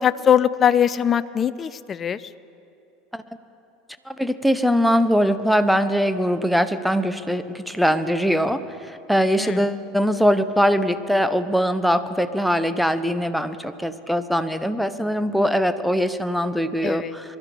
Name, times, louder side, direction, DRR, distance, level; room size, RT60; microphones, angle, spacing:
voice 1, 0.0-2.3 9.4-9.6 16.8-17.1, left 9 dB, 30° left, 16 dB, 0.5 m, -21 dB
voice 2, 4.1-17.2, equal, ahead, 12 dB, 0.8 m, -22 dB
22.5 x 12.5 x 5.1 m, 2.6 s
hypercardioid pair, 80°, 0 cm